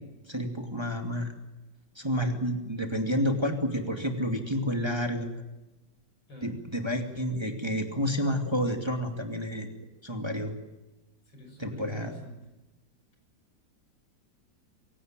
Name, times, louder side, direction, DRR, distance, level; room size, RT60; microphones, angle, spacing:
voice 1, 0.3-1.3 2.0-5.4 6.4-9.7 10.0-10.6 11.6-12.2, equal, 15° right, 4 dB, 2.4 m, -30 dB
voice 2, 6.3-6.7 11.3-12.5, left 1 dB, 85° left, 4 dB, 7.1 m, -46 dB
24.5 x 17.0 x 9.0 m, 1.0 s
omnidirectional pair, 2.0 m